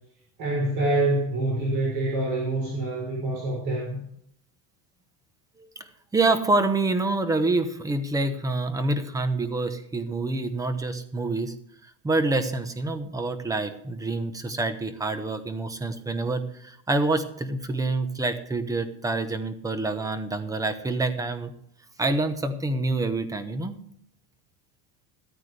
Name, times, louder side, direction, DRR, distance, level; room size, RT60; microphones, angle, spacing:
voice 1, 0.4-4.0, right 2 dB, 45° right, -3 dB, 6.4 m, -26 dB
voice 2, 5.6-11.5 11.8-21.5 22.0-23.8, right 2 dB, 5° right, 10 dB, 0.9 m, -27 dB
15.0 x 14.0 x 3.3 m, 0.68 s
supercardioid pair, 160°, 48 cm